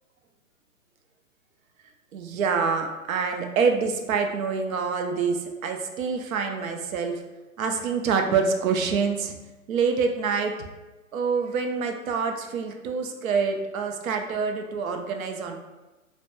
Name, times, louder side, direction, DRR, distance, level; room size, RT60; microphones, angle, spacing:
voice 1, 2.1-7.2 7.6-9.4 9.7-10.6 11.1-15.6, right 5 dB, 85° right, 4 dB, 0.5 m, -26 dB
2.2 x 2.1 x 2.8 m, 1.1 s
hypercardioid pair, 150°, 40 cm